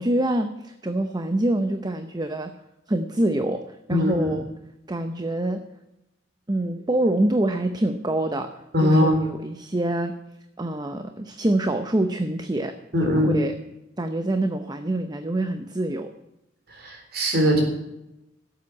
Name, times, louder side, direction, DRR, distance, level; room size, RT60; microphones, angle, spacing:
voice 1, 0.0-2.5 2.9-3.6 3.9-4.4 4.9-5.6 6.5-8.5 8.8-10.2 10.6-12.7 13.0-13.5 14.0-16.1, right 1 dB, 20° right, 7 dB, 0.7 m, -25 dB
voice 2, 3.9-4.3 8.7-9.2 12.9-13.4 16.8-17.6, left 1 dB, 55° right, 2 dB, 3.7 m, -21 dB
12.5 x 8.1 x 8.4 m, 0.91 s
head